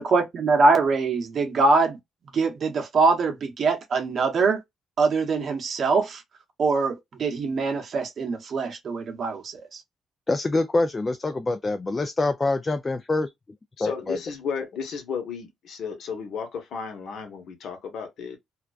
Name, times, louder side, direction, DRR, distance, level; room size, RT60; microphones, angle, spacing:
voice 1, 0.0-2.0 2.3-4.6 5.0-6.2 6.6-9.8, right 3 dB, 55° right, 0.8 m, -23 dB
voice 2, 10.3-13.3 13.8-14.2, left 2 dB, 25° left, 0.3 m, -25 dB
voice 3, 13.8-18.4, left 6 dB, 70° left, 0.9 m, -33 dB
2.4 x 2.2 x 2.3 m
cardioid pair, 90°, 0 cm